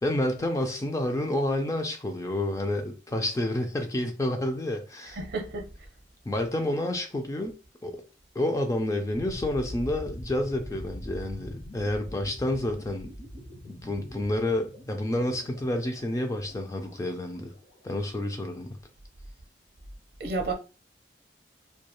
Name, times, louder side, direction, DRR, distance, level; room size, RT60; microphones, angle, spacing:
voice 1, 0.0-5.2 6.3-7.6 7.8-8.0 8.4-13.1 13.7-17.5 17.8-18.8, left 1 dB, 20° left, 0.3 m, -29 dB
voice 2, 5.2-5.7 20.2-20.5, right 3 dB, 60° right, 0.6 m, -31 dB
sound 1, 9.2-18.0, equal, 55° left, 0.8 m, -43 dB
2.3 x 2.2 x 2.9 m
head